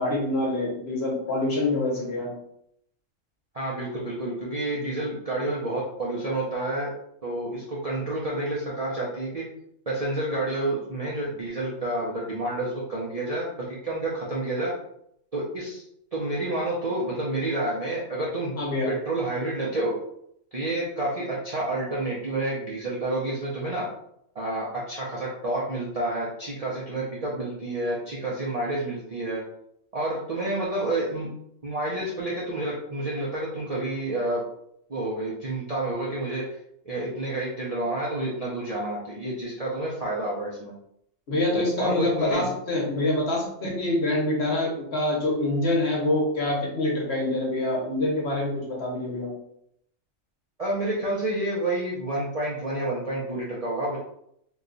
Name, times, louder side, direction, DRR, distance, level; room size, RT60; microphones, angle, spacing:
voice 1, 0.0-2.3 18.6-18.9 41.3-49.3, left 2 dB, 55° left, -2 dB, 1.1 m, -26 dB
voice 2, 3.5-6.9 7.2-9.4 9.9-14.7 15.3-15.8 16.1-18.5 18.9-19.9 20.5-23.9 24.3-29.4 29.9-31.3 31.6-34.4 34.9-36.6 36.8-40.7 41.8-42.5 50.6-54.0, right 1 dB, 45° right, -6 dB, 0.5 m, -29 dB
2.9 x 2.3 x 3.8 m, 0.74 s
omnidirectional pair, 1.4 m